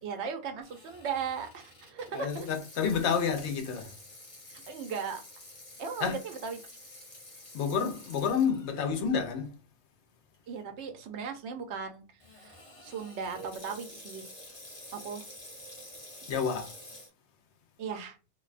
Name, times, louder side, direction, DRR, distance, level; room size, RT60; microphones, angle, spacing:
voice 1, 0.0-2.5 4.5-5.2 5.8-6.6 10.5-12.0 12.3-14.3 14.9-15.2 17.8-18.2, right 6 dB, 80° right, 0.9 m, -37 dB
Water tap faucet / Sink (filling or washing), 0.6-9.0 9.5-9.6 10.3-10.6 12.2-17.1, left 1 dB, 35° left, 0.8 m, -49 dB
voice 2, 2.1-3.9 6.0-6.2 7.5-9.6 16.3-16.7, left 6 dB, 85° left, 0.9 m, -29 dB
2.6 x 2.2 x 2.4 m
omnidirectional pair, 1.1 m